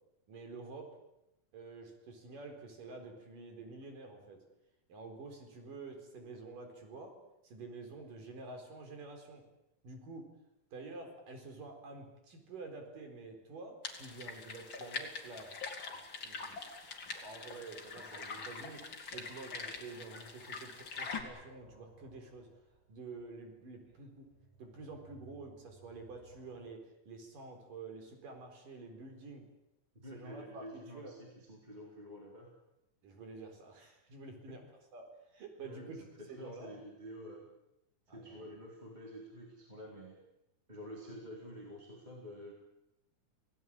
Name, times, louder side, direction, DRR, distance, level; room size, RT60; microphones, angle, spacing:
voice 1, 0.3-1.0 1.5-4.4 4.9-7.2 7.4-9.4 9.8-10.3 10.7-15.5 15.8-16.7 17.2-22.5 22.9-24.3 24.6-29.4 30.1-31.1 33.0-34.6 34.9-36.0 36.3-36.8 38.1-38.5, right 3 dB, 85° right, 4 dB, 5.9 m, -49 dB
sound 1, 13.8-21.2, left 4 dB, 40° left, 3.3 m, -44 dB
sound 2, 20.4-20.5 20.8-26.7, right 2 dB, 50° right, 5.7 m, -62 dB
voice 2, 29.9-32.5 34.5-34.6 35.6-37.4 38.1-40.2 40.7-42.5, equal, 15° right, -2 dB, 4.1 m, -49 dB
27.5 x 18.0 x 8.8 m, 0.88 s
omnidirectional pair, 3.7 m